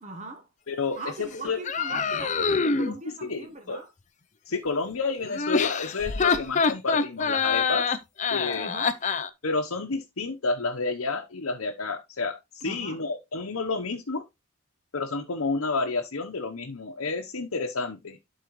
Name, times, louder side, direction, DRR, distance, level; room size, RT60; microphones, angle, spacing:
voice 1, 0.0-0.5 1.0-2.3 2.6-3.9 8.5-8.9 12.6-13.0, right 2 dB, 30° right, 1.1 m, -40 dB
voice 2, 0.7-1.6 3.0-3.8 4.5-7.9 8.3-8.7 9.4-14.2 14.9-18.2, left 3 dB, 70° left, 0.9 m, -30 dB
sound 1, 1.6-3.0 5.3-9.3, left 5 dB, 35° left, 0.6 m, -25 dB
11.5 x 4.7 x 3.1 m
head